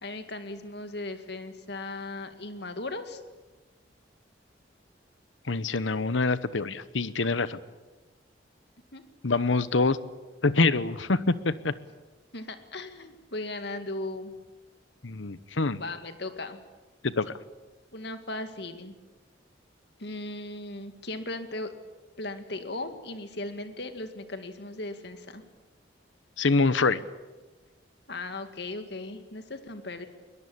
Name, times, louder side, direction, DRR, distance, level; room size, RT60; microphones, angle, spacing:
voice 1, 0.0-3.2 8.9-9.0 12.3-14.3 15.7-16.6 17.9-18.9 20.0-21.7 22.2-25.4 28.1-30.1, left 2 dB, 60° left, 8 dB, 2.2 m, -37 dB
voice 2, 5.5-7.6 9.2-10.0 10.4-11.7 15.0-15.8 17.0-17.3 26.4-27.0, left 3 dB, 85° left, 15 dB, 1.0 m, -25 dB
22.0 x 21.5 x 8.6 m, 1.2 s
head